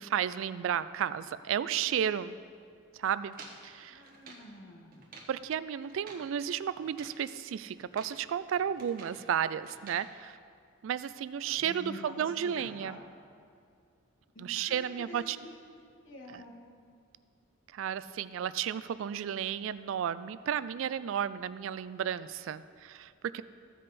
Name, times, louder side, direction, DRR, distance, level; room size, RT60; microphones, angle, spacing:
voice 1, 0.0-2.4 3.0-3.4 3.6-4.0 5.3-10.4 10.8-13.0 14.4-15.4 16.3-16.4 17.7-23.4, right 9 dB, 75° right, 15 dB, 0.3 m, -33 dB
sound 1, 3.3-4.5 4.9-5.4 5.8-6.3 6.8-7.2 7.8-8.2 8.5-9.2 9.6-10.1, right 4 dB, 45° right, 1.2 m, -51 dB
voice 2, 3.9-5.1 11.5-13.0 14.3-15.6 16.0-16.5, left 1 dB, 70° left, 0 dB, 1.5 m, -47 dB
15.0 x 5.4 x 4.1 m, 2.3 s
head